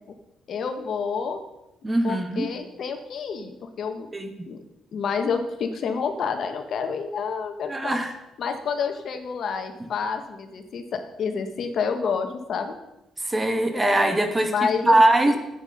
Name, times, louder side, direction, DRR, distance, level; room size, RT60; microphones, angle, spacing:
voice 1, 0.5-1.4 2.0-4.1 4.5-4.6 4.9-8.0 8.4-12.8 14.4-15.0 15.3-15.4, left 6 dB, 60° left, 6 dB, 1.4 m, -29 dB
voice 2, 1.8-2.5 4.1-4.4 7.7-8.1 13.2-14.5 14.8-15.4, right 1 dB, 15° right, 6 dB, 1.5 m, -21 dB
10.5 x 8.4 x 5.4 m, 0.94 s
cardioid pair, 90°, 0 cm